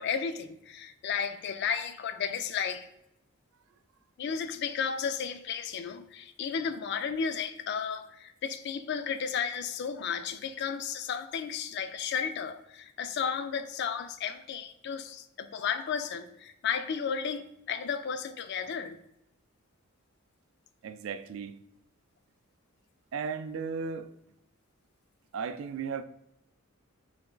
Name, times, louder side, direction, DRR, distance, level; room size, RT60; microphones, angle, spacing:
voice 1, 0.0-2.9 4.2-19.0, left 7 dB, 50° left, 0.3 m, -33 dB
voice 2, 20.8-21.6 23.1-24.1 25.3-26.0, right 5 dB, 65° right, 0.3 m, -35 dB
3.4 x 3.0 x 3.7 m
head